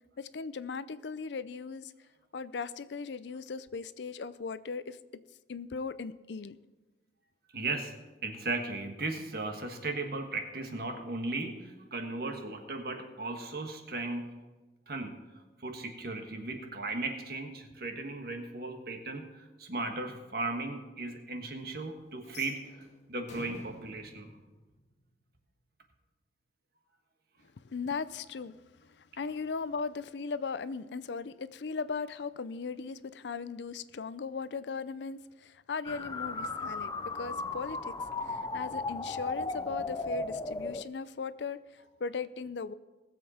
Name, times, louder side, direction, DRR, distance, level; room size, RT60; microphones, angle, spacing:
voice 1, 0.2-1.9 2.3-5.0 5.5-6.6 27.6-37.9 38.2-42.7, left 5 dB, 75° left, 15 dB, 0.5 m, -38 dB
voice 2, 7.5-7.9 8.2-14.3 14.9-24.3, right 2 dB, 55° right, 4 dB, 1.6 m, -37 dB
sound 1, 22.2-25.3, left 1 dB, 40° left, 1.6 m, -51 dB
sound 2, 35.8-40.8, left 3 dB, 20° left, 0.4 m, -36 dB
19.5 x 7.5 x 4.3 m, 1.2 s
head